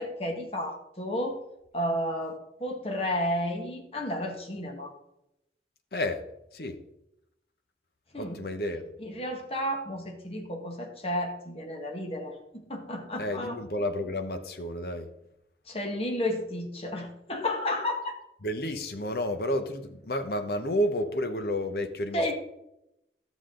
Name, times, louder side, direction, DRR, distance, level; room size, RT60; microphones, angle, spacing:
voice 1, 0.0-1.4 1.7-4.9 8.1-8.4 9.0-13.6 15.7-18.1 22.1-22.3, left 1 dB, 35° left, 3 dB, 1.5 m, -32 dB
voice 2, 8.2-8.8 13.2-15.1 18.4-22.3, left 1 dB, 60° left, 7 dB, 0.9 m, -31 dB
12.0 x 7.3 x 3.8 m, 0.84 s
head